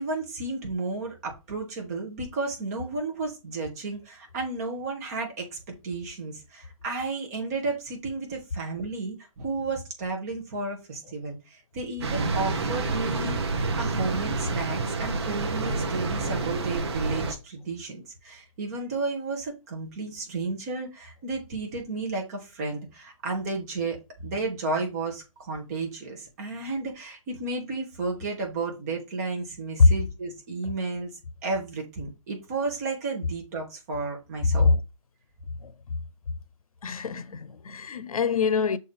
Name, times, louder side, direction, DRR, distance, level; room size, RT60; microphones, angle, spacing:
voice 1, 0.0-5.6 5.8-13.4 13.8-24.0 24.2-31.1 31.4-34.8, right 3 dB, 30° right, 1.9 m, -32 dB
sound 1, 12.0-17.3, right 3 dB, 50° right, 1.2 m, -28 dB
voice 2, 36.8-38.8, left 4 dB, 80° left, 0.7 m, -22 dB
6.5 x 4.5 x 3.4 m
hypercardioid pair, 160°, 18 cm